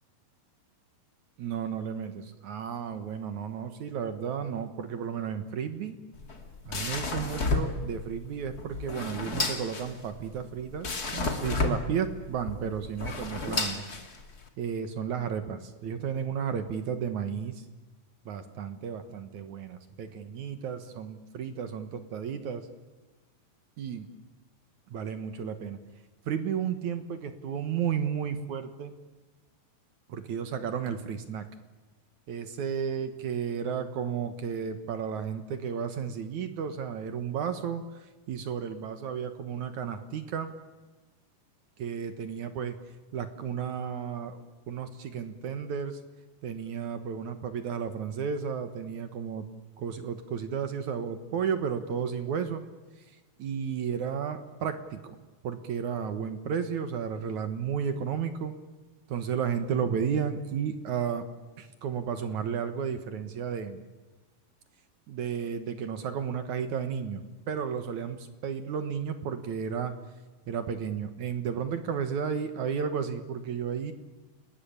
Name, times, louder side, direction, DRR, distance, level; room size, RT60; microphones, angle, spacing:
voice 1, 1.4-6.0 6.7-13.9 14.6-17.6 18.3-22.7 23.8-24.1 24.9-25.8 26.3-28.9 30.1-31.4 32.3-37.8 38.3-40.5 41.8-42.8 43.1-46.0 46.4-49.5 49.8-52.6 53.4-55.0 55.4-58.6 59.1-61.3 61.6-63.8 65.1-67.2 67.5-69.9 70.5-73.9, right 7 dB, 60° right, 9 dB, 2.2 m, -33 dB
sound 1, 6.1-14.5, left 3 dB, 30° left, 2.3 m, -32 dB
30.0 x 20.5 x 8.7 m, 1.2 s
omnidirectional pair, 4.8 m